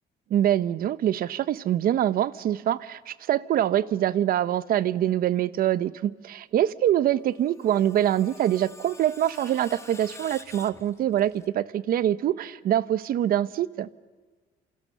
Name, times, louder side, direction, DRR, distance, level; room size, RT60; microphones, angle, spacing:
voice 1, 0.3-13.9, right 11 dB, 60° right, 0.9 m, -24 dB
Screech, 7.2-11.5, left 3 dB, 15° left, 1.6 m, -48 dB
28.0 x 27.5 x 6.7 m
cardioid pair, 110°, 17 cm